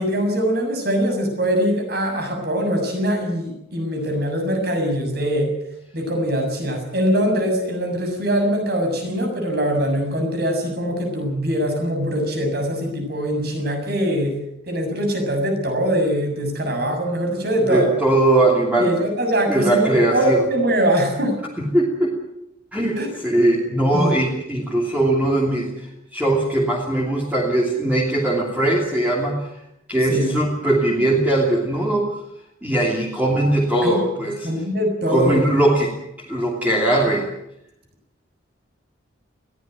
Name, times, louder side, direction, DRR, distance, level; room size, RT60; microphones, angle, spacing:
voice 1, 0.0-5.5 5.9-14.4 14.7-17.9 18.8-21.4 23.0-23.1 23.9-24.1 30.1-30.3 33.8-34.0 34.4-35.5, equal, 55° right, 4 dB, 7.0 m, -22 dB
voice 2, 17.7-18.9 19.5-20.5 21.6-22.1 22.7-25.9 26.1-29.5 29.9-32.1 32.6-34.5 35.1-35.9 36.2-37.3, right 1 dB, 10° right, -3 dB, 2.9 m, -20 dB
21.5 x 16.0 x 9.3 m, 0.83 s
head